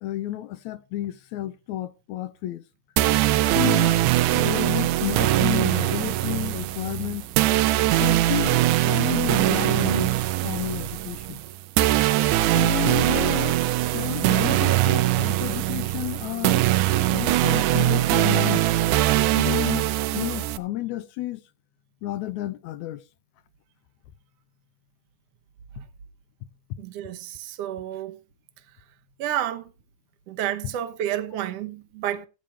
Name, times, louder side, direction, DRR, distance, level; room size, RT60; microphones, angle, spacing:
voice 1, 0.0-2.6 3.6-7.2 8.0-10.2 10.4-11.4 12.5-16.7 17.1-18.7 19.3-21.4 22.0-23.0, left 15 dB, 75° left, 2.0 m, -31 dB
sound 1, 3.0-20.6, right 15 dB, 90° right, 2.2 m, -22 dB
voice 2, 26.8-28.2 29.2-29.7 30.3-32.3, right 11 dB, 65° right, 1.9 m, -30 dB
15.0 x 9.0 x 3.3 m
omnidirectional pair, 3.4 m